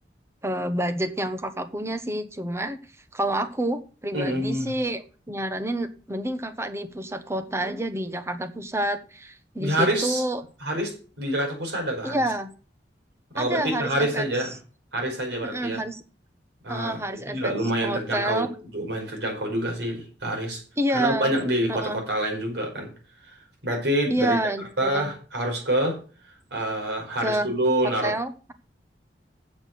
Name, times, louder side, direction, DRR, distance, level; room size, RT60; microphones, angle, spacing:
voice 1, 0.4-2.8 3.1-10.4 12.0-12.5 13.4-14.2 15.4-16.0 16.7-17.5 17.8-18.5 20.8-21.3 21.7-22.0 24.1-25.1 27.2-27.5 28.0-28.5, right 1 dB, 15° right, 10 dB, 1.0 m, -28 dB
voice 2, 4.1-4.7 9.6-10.2 10.6-12.2 13.3-14.5 14.9-15.8 16.6-18.5 18.7-20.6 20.9-22.9 23.6-24.4 24.8-26.0 26.5-28.1, right 1 dB, 80° right, 1 dB, 5.0 m, -26 dB
8.3 x 7.3 x 6.7 m, 0.37 s
head